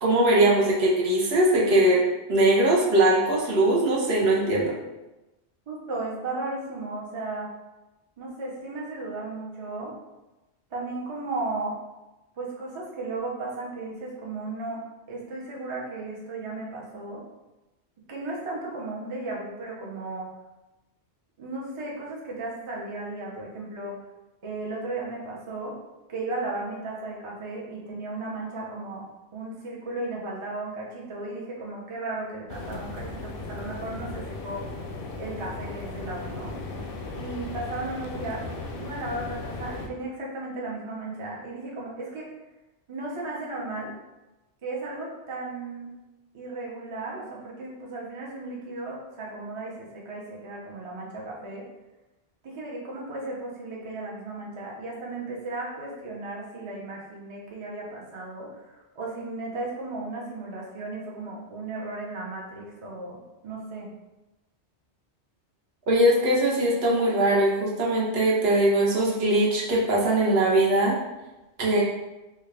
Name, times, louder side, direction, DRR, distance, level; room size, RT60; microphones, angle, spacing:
voice 1, 0.0-2.0 2.3-4.7 65.9-71.0 71.6-71.8, right 1 dB, 65° right, -4 dB, 1.0 m, -21 dB
voice 2, 5.7-7.5 8.2-9.9 10.7-11.8 12.4-14.8 15.1-17.2 18.1-20.3 21.4-24.0 24.4-25.7 26.1-34.7 35.2-36.6 37.2-38.5 38.7-42.3 42.9-43.9 44.6-46.0 46.3-51.6 52.4-63.9, right 2 dB, 35° right, -4 dB, 0.5 m, -35 dB
sound 1, 32.5-39.9, left 3 dB, 65° left, 0.7 m, -36 dB
3.5 x 2.3 x 3.2 m, 1.0 s
omnidirectional pair, 1.2 m